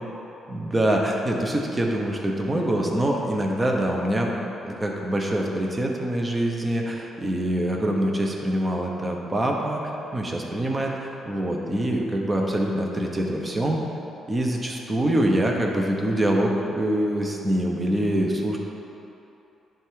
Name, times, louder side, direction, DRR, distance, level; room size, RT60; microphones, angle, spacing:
voice 1, 0.5-4.3 4.6-13.8 14.3-18.6, right 1 dB, 20° right, 0 dB, 0.9 m, -25 dB
10.0 x 3.4 x 3.8 m, 3.0 s
cardioid pair, 90°, 0 cm